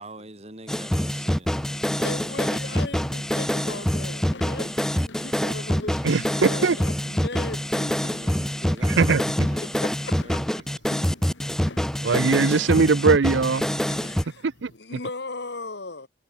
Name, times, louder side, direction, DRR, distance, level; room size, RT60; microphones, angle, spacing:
voice 1, 0.0-2.1 8.1-10.7, right 2 dB, 35° right, 3.3 m, -44 dB
sound 1, 0.7-14.2, equal, 5° left, 0.4 m, -25 dB
sound 2, 1.3-14.8, left 2 dB, 90° left, 2.3 m, -48 dB
voice 2, 1.9-8.0 9.6-10.2 14.0-16.1, left 3 dB, 65° left, 1.6 m, -37 dB
voice 3, 6.0-6.8 9.0-9.2 12.0-13.7 14.4-14.7, right 4 dB, 85° right, 0.6 m, -20 dB
head